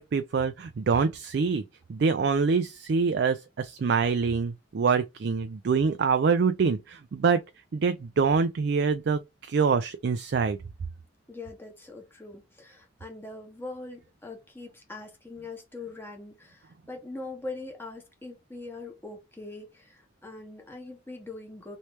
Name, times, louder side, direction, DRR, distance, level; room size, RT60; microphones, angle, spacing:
voice 1, 0.0-1.6 1.9-7.4 7.7-10.6, right 5 dB, 55° right, 0.4 m, -25 dB
voice 2, 11.3-21.8, left 2 dB, 10° left, 1.0 m, -42 dB
3.2 x 3.1 x 2.8 m
head